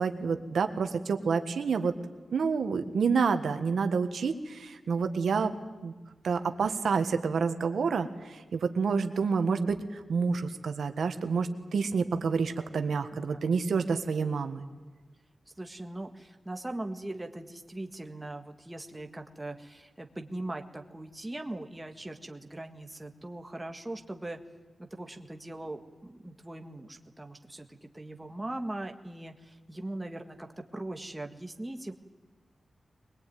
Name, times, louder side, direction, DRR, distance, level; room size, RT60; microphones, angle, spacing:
voice 1, 0.0-2.0 2.3-5.5 5.8-5.9 6.2-14.6, right 5 dB, 90° right, 7 dB, 1.6 m, -28 dB
voice 2, 13.1-13.4 15.6-24.4 24.8-31.9, right 1 dB, 15° right, 4 dB, 1.6 m, -40 dB
22.5 x 21.5 x 9.4 m, 1.3 s
wide cardioid pair, 140°, 0 cm